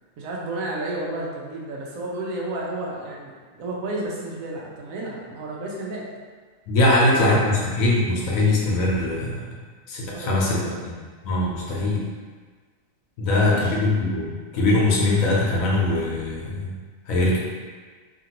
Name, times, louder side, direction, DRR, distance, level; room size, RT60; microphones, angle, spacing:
voice 1, 0.2-6.1 10.1-10.9 13.3-13.8, right 2 dB, 85° right, -3 dB, 1.1 m, -32 dB
voice 2, 6.7-9.4 9.9-10.6 11.2-12.0 13.2-16.7 17.1-17.4, left 2 dB, 80° left, -4 dB, 1.1 m, -21 dB
2.9 x 2.5 x 2.8 m, 1.5 s
omnidirectional pair, 1.4 m